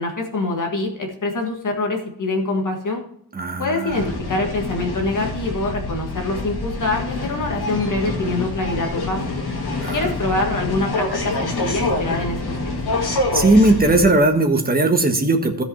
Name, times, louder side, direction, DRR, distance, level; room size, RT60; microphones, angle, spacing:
voice 1, 0.0-3.0 3.6-9.2 9.9-12.6 12.9-13.0, left 2 dB, 50° left, 2 dB, 1.7 m, -25 dB
voice 2, 3.3-4.1 9.8-10.0 13.3-15.6, right 2 dB, 20° right, 4 dB, 1.4 m, -18 dB
sound 1, 3.9-14.0, left 2 dB, 70° left, 2.1 m, -26 dB
16.0 x 5.4 x 4.3 m, 0.72 s
wide cardioid pair, 160°, 40 cm